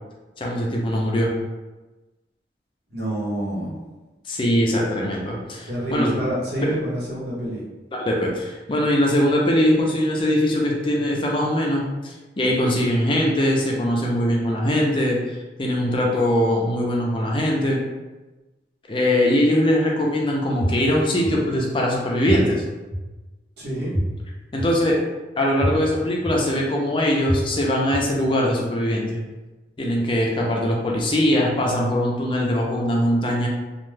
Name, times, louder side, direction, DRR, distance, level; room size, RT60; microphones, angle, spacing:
voice 1, 0.4-1.3 4.3-6.1 7.9-17.8 18.9-22.6 24.5-25.0 25.4-29.2 29.8-33.5, equal, 30° left, -2 dB, 0.4 m, -21 dB
voice 2, 2.9-3.7 5.7-7.6 23.6-23.9, right 1 dB, 65° right, -7 dB, 1.0 m, -27 dB
sound 1, 20.6-20.7 21.2-21.3 22.3-22.4 22.9-23.0 23.9-24.0 24.6-24.7 25.6-25.7 26.2-26.3 27.3-27.4 27.9-28.0, equal, 40° right, 0.8 m, -23 dB
2.4 x 2.2 x 3.2 m, 1.2 s
head